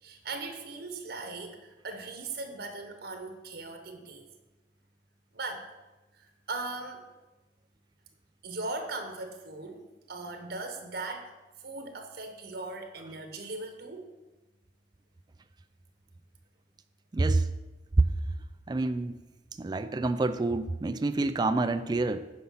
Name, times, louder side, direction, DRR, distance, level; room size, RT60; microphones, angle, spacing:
voice 1, 0.0-4.3 5.3-5.7 6.1-7.0 8.4-11.3 11.6-14.1, right 3 dB, 65° right, 6 dB, 1.0 m, -39 dB
voice 2, 17.1-17.5 18.0-18.1 18.7-19.2 19.6-22.3, right 2 dB, 25° right, 10 dB, 0.3 m, -27 dB
9.4 x 5.5 x 5.7 m, 1.1 s
head